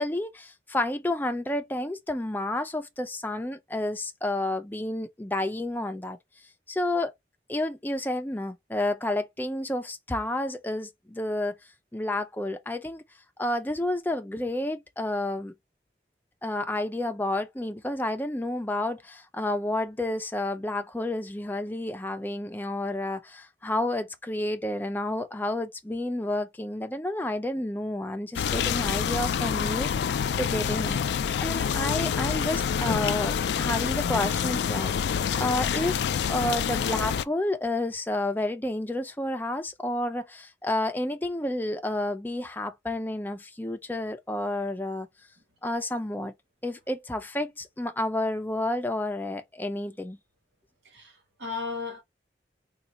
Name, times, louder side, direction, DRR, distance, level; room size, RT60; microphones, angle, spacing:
voice 1, 0.0-6.2 6.7-7.1 7.5-11.5 11.9-13.0 13.4-15.5 16.4-31.0 31.4-34.9 35.4-36.0 36.3-45.1 45.6-46.3 46.6-50.2, left 1 dB, 10° left, 0.4 m, -30 dB
sound 1, 28.4-37.2, left 7 dB, 75° left, 0.3 m, -27 dB
voice 2, 50.8-52.0, left 4 dB, 85° right, 1.6 m, -35 dB
4.1 x 2.4 x 2.9 m
head